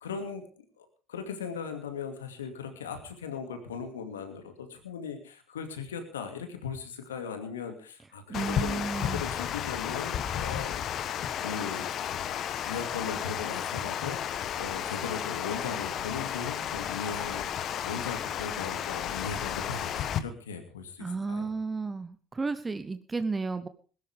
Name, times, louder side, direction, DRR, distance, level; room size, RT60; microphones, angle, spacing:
voice 1, 0.0-10.8 11.4-11.9 12.6-21.5, left 6 dB, 90° left, 7 dB, 2.4 m, -38 dB
Water, 8.3-20.2, left 9 dB, 55° left, 1.2 m, -33 dB
voice 2, 8.3-9.2 21.0-23.7, right 4 dB, 25° right, 10 dB, 1.1 m, -33 dB
20.5 x 12.5 x 3.6 m, 0.38 s
hypercardioid pair, 60°, 0 cm